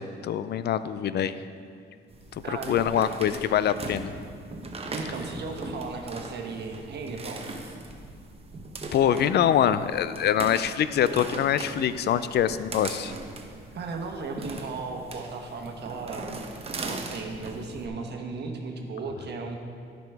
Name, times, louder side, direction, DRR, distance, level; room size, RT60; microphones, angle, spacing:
voice 1, 0.0-1.4 2.5-4.1 8.9-13.1, left 9 dB, 55° left, 14 dB, 0.4 m, -24 dB
sound 1, 2.1-17.9, right 2 dB, 30° right, 0.9 m, -40 dB
voice 2, 2.4-3.1 4.9-7.4 13.7-16.3 16.8-19.5, right 4 dB, 60° right, 2 dB, 1.1 m, -36 dB
14.0 x 5.0 x 3.4 m, 2.2 s
cardioid pair, 90°, 20 cm